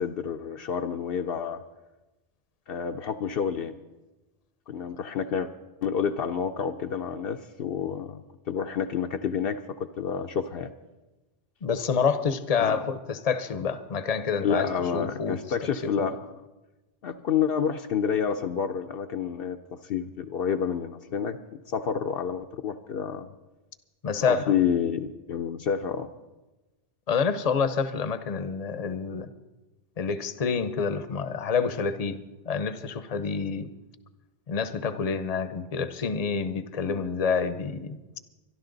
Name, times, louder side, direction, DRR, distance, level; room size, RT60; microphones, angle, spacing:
voice 1, 0.0-1.6 2.7-3.7 4.7-5.5 5.8-8.2 8.5-10.7 12.6-12.8 14.4-16.3 17.0-21.4 21.7-23.3 24.2-26.1 36.9-37.0, left 7 dB, 65° left, 6 dB, 0.8 m, -29 dB
voice 2, 11.6-15.4 15.8-16.1 24.0-24.5 27.1-29.3 30.0-33.7 34.5-38.0, left 5 dB, 40° left, 12 dB, 0.8 m, -28 dB
25.0 x 11.5 x 3.9 m, 1.1 s
omnidirectional pair, 1.1 m